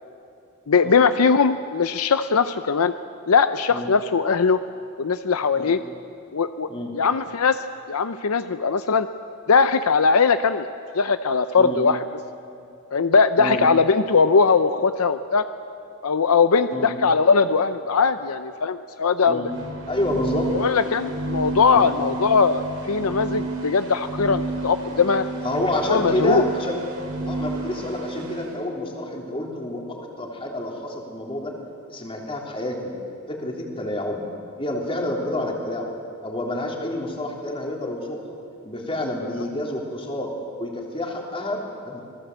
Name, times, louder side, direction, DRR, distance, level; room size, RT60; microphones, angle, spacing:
voice 1, 0.7-2.9 3.3-4.6 5.0-5.8 6.3-6.7 6.9-7.6 7.9-9.1 9.5-10.7 10.9-12.0 12.9-15.5 16.0-19.4 20.5-25.2 25.9-26.5, left 5 dB, 70° left, 10 dB, 0.6 m, -20 dB
sound 1, 19.4-28.5, right 2 dB, 90° right, 4.6 m, -31 dB
voice 2, 19.9-20.5 21.7-21.9 25.3-26.8 27.2-31.5 31.9-32.9 33.3-34.2 34.6-35.9 36.2-38.2 38.6-40.3 40.6-42.0, left 1 dB, 25° left, -1 dB, 3.5 m, -28 dB
26.5 x 19.0 x 8.1 m, 2.7 s
head